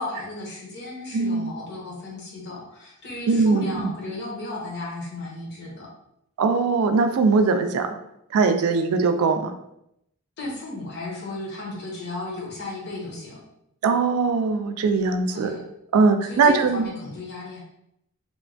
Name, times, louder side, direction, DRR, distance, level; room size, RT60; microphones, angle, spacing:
voice 1, 0.0-5.9 10.4-13.4 15.3-15.6 16.2-17.6, left 2 dB, 50° left, -3 dB, 0.8 m, -34 dB
voice 2, 1.1-1.5 3.3-3.9 6.4-8.0 8.3-9.5 13.8-15.5 15.9-16.9, right 4 dB, 75° right, 7 dB, 0.3 m, -21 dB
3.0 x 2.1 x 2.5 m, 0.79 s
head